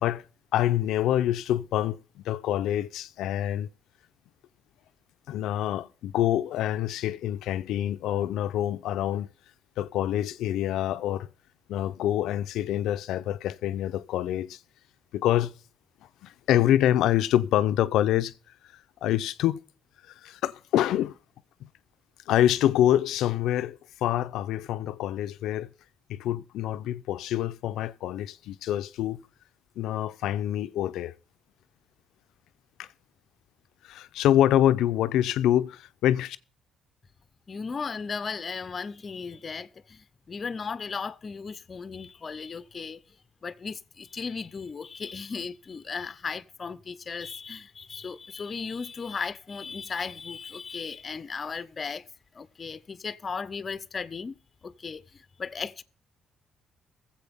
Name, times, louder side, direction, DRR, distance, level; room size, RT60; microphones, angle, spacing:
voice 1, 0.5-3.7 5.3-9.3 9.8-11.3 11.7-14.6 15.1-15.5 16.2-18.3 19.0-19.6 20.2-21.2 21.6-21.7 22.3-25.7 26.1-29.2 29.8-31.1 32.8-32.9 33.8-36.4, left 12 dB, 85° left, 0.6 m, -26 dB
voice 2, 37.5-43.0 43.4-52.0 52.3-54.4 54.6-55.8, left 5 dB, 40° left, 0.7 m, -36 dB
22.0 x 7.8 x 3.6 m
cardioid pair, 90°, 0 cm